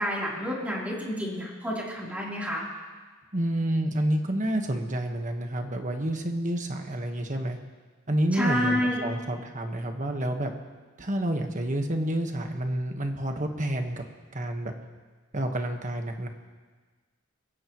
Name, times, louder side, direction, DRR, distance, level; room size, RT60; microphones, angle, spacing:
voice 1, 0.0-2.6 8.3-9.0, equal, 10° right, -5 dB, 3.6 m, -29 dB
voice 2, 3.3-7.6 8.1-10.5 11.0-14.0 14.3-14.7 15.3-16.3, right 1 dB, 40° right, 4 dB, 1.4 m, -29 dB
22.5 x 16.0 x 3.1 m, 1.4 s
head